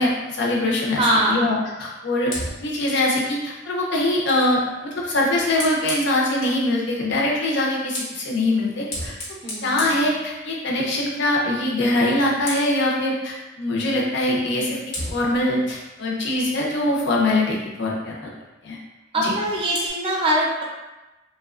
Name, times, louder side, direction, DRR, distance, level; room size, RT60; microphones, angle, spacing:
voice 1, 0.0-2.3 2.6-9.1 9.6-14.8 15.1-18.1 18.6-18.8 19.2-19.3, left 1 dB, 60° left, -2 dB, 0.6 m, -23 dB
voice 2, 1.0-1.5 9.4-10.0 19.1-20.6, right 1 dB, 30° right, -4 dB, 0.5 m, -22 dB
Fire, 2.2-6.7 7.6-10.8 11.2-11.5 11.8-12.9 14.2-14.4 14.9-17.2 19.1-19.9, left 1 dB, 90° left, 1.0 m, -37 dB
2.8 x 2.2 x 2.4 m, 1.1 s
head